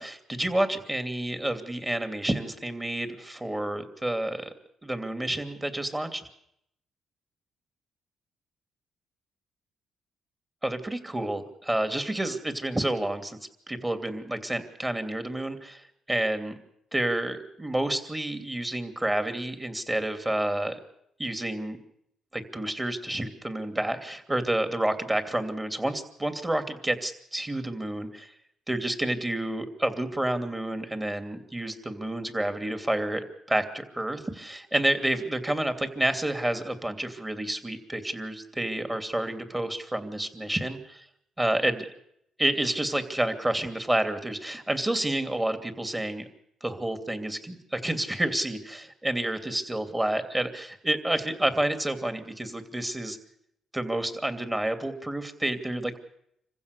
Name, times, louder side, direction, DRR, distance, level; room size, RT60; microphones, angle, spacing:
voice 1, 0.0-4.5 4.8-6.3 10.6-13.4 13.7-16.5 16.9-20.8 21.2-21.8 22.3-28.3 28.7-41.0 41.4-41.9 42.4-46.2 46.6-53.2 53.7-56.0, right 1 dB, 15° right, 8 dB, 2.8 m, -29 dB
26.5 x 15.5 x 6.8 m, 0.72 s
cardioid pair, 90°, 0 cm